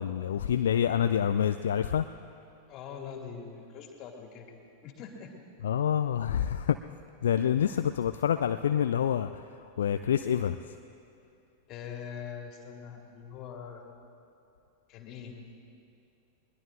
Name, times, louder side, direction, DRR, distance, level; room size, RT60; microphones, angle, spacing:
voice 1, 0.0-2.0 5.6-6.8 7.2-9.3 9.8-10.6, left 9 dB, 65° left, 9 dB, 0.4 m, -27 dB
voice 2, 2.7-4.6 4.8-5.3 11.7-13.9 14.9-15.4, left 7 dB, 35° left, 2 dB, 2.3 m, -43 dB
22.0 x 21.0 x 2.6 m, 2.6 s
figure-of-eight pair, 90°, 0 cm